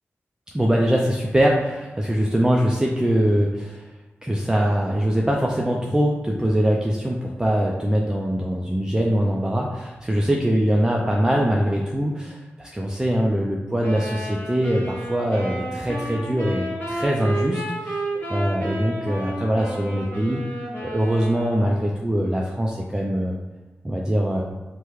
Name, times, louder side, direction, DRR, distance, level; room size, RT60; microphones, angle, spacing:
voice 1, 0.5-3.9 4.2-18.0 18.3-20.4 20.8-23.4 23.8-24.4, equal, 15° right, -2 dB, 0.4 m, -22 dB
sound 1, 13.8-21.8, right 1 dB, 40° left, 1.0 m, -31 dB
3.4 x 2.1 x 3.1 m, 1.2 s
cardioid pair, 50°, 5 cm